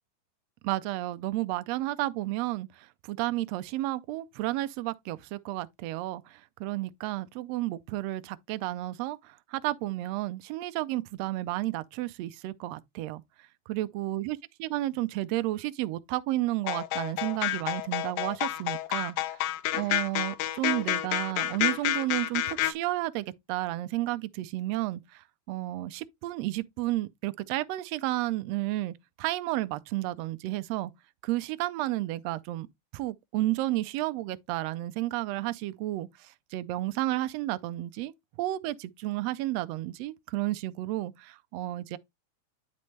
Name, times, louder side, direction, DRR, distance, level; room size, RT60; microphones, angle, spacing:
voice 1, 0.6-13.2 13.7-19.4 19.7-30.9 31.2-32.7 32.9-38.1 38.4-42.0, right 16 dB, 80° right, 1.5 m, -32 dB
sound 1, 16.7-22.7, left 14 dB, 90° left, 2.1 m, -29 dB
10.5 x 4.3 x 3.2 m
omnidirectional pair, 3.4 m